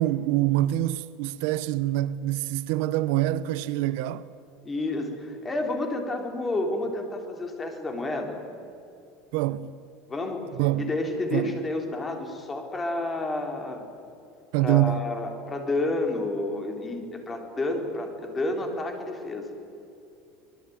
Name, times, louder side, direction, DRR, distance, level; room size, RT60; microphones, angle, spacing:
voice 1, 0.0-4.3 9.3-9.7 10.6-10.9 11.3-11.6 14.5-15.0, right 15 dB, 70° right, 0.8 m, -25 dB
voice 2, 4.6-8.4 10.1-10.4 10.8-13.9 14.6-19.5, left 2 dB, 15° left, 3.6 m, -30 dB
25.5 x 21.0 x 9.5 m
cardioid pair, 160°, 0 cm